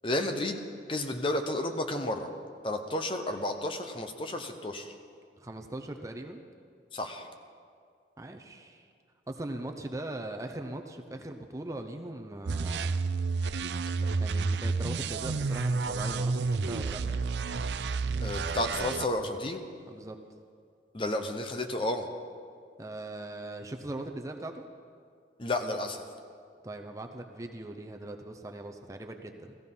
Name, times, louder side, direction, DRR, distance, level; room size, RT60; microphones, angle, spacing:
voice 1, 0.0-0.6 0.9-2.3 2.6-4.9 6.9-7.3 18.2-19.6 20.9-22.1 25.4-26.0, left 1 dB, 30° left, 6 dB, 0.9 m, -32 dB
voice 2, 5.4-6.4 8.2-8.9 9.3-13.0 14.2-17.0 19.9-20.2 22.8-24.7 26.6-29.6, right 1 dB, 20° right, 4 dB, 0.7 m, -40 dB
sound 1, 12.5-19.1, right 4 dB, 75° right, 0.5 m, -30 dB
15.5 x 14.5 x 5.5 m, 2.2 s
head